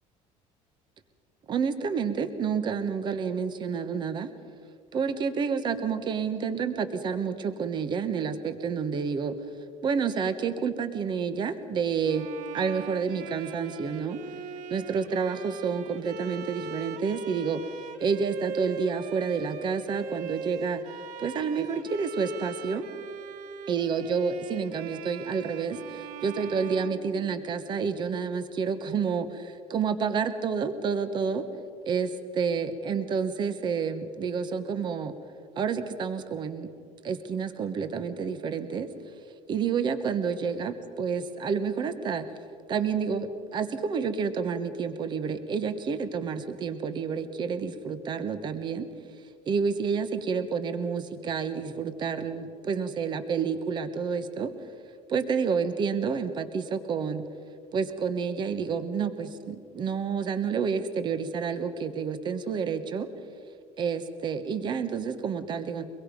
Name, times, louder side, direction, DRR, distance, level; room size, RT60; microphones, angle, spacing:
voice 1, 1.5-4.3 4.9-9.4 9.8-12.3 12.5-14.2 14.7-17.6 18.0-20.8 21.2-22.8 23.7-31.5 31.9-35.1 35.6-36.7 37.0-38.9 39.2-42.3 42.7-48.9 49.5-54.5 55.1-57.2 57.7-63.1 63.8-65.8, right 6 dB, 35° right, 10 dB, 1.3 m, -29 dB
Bowed string instrument, 12.0-27.8, right 6 dB, 60° right, 1.0 m, -41 dB
24.5 x 22.0 x 5.3 m, 2.3 s
cardioid pair, 160°, 14 cm